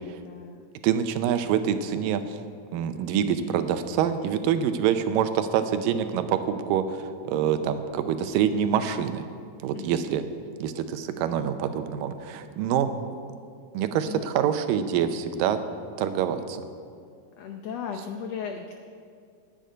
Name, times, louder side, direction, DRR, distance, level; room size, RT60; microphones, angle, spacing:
voice 1, 0.0-0.7 9.7-10.1 14.1-14.3 17.4-18.7, left 6 dB, 85° left, 4 dB, 1.4 m, -36 dB
voice 2, 0.8-2.2 2.7-9.2 9.6-10.2 10.6-12.9 13.7-15.6 16.0-16.6, right 9 dB, 85° right, 9 dB, 2.4 m, -26 dB
10.5 x 9.0 x 9.3 m, 2.2 s
omnidirectional pair, 3.9 m